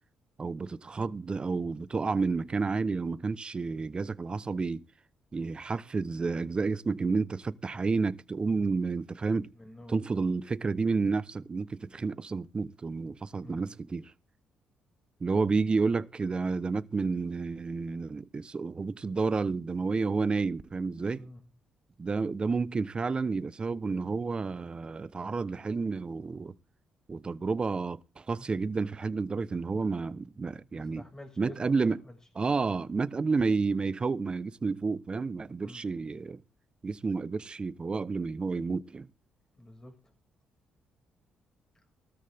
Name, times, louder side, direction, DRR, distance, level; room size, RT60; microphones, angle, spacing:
voice 1, 0.4-4.8 5.3-9.5 9.9-14.1 15.2-21.3 22.0-26.5 27.1-31.0 31.4-32.0 32.4-36.4 36.8-39.1, right 4 dB, 35° right, 1.1 m, -30 dB
voice 2, 9.5-10.0 13.4-13.6 21.1-21.4 30.7-31.8 32.0-32.2 35.6-35.8 39.6-40.1, left 1 dB, 20° left, 6.0 m, -48 dB
18.5 x 13.0 x 3.6 m
supercardioid pair, 60°, 3 cm